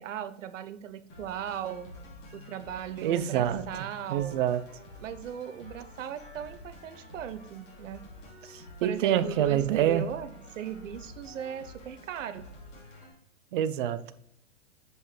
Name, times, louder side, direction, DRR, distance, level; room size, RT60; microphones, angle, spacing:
voice 1, 0.0-1.9 2.3-4.4 5.0-8.1 8.8-12.5, right 9 dB, 75° right, 11 dB, 0.8 m, -38 dB
sound 1, 1.1-13.1, left 1 dB, 25° left, 2.8 m, -49 dB
voice 2, 3.0-3.6 4.1-4.6 8.5-10.0 13.5-14.1, right 11 dB, 45° right, 12 dB, 0.6 m, -26 dB
7.6 x 5.4 x 3.2 m, 0.71 s
hypercardioid pair, 145°, 38 cm